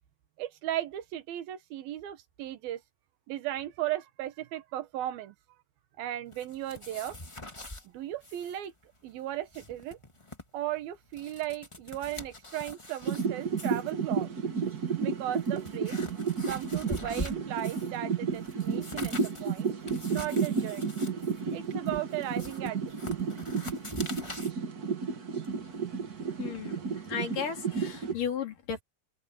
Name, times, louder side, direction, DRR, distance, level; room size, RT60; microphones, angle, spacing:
voice 1, 0.4-2.8 3.3-5.3 6.0-7.2 7.8-8.7 9.0-10.0 10.5-14.3 14.8-16.0 16.5-19.7 20.1-20.9 21.5-23.2, right 13 dB, 85° right, 3.2 m, -36 dB
sound 1, 6.3-7.8 8.2-8.6 8.8-8.9 9.3-10.4 10.9-13.3 13.6-13.9 14.7-14.8 15.3-18.0 18.3-24.5, left 2 dB, 35° left, 0.4 m, -43 dB
sound 2, 13.0-28.1, right 5 dB, 50° right, 1.1 m, -32 dB
voice 2, 26.4-28.8, left 7 dB, 65° left, 4.6 m, -35 dB
open air
omnidirectional pair, 4.2 m